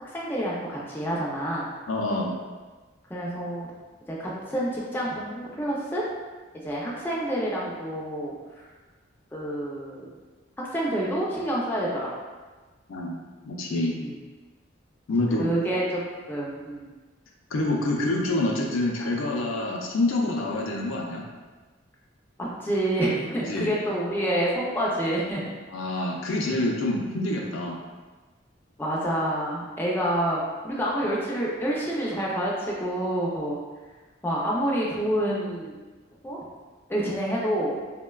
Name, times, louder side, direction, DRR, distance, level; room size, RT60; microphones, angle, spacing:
voice 1, 0.0-1.7 3.1-3.7 4.1-6.0 6.5-8.7 9.3-10.1 10.6-12.1 14.0-14.1 15.4-16.0 16.3-16.9 22.4-25.4 28.8-33.6 34.2-35.7 36.2-36.4 36.9-37.8, right 1 dB, 10° left, -5 dB, 0.4 m, -28 dB
voice 2, 1.9-2.3 12.9-14.0 15.1-15.5 17.5-21.2 23.4-23.7 25.7-27.8, left 2 dB, 75° left, 0 dB, 0.4 m, -27 dB
3.9 x 2.1 x 2.2 m, 1.3 s
head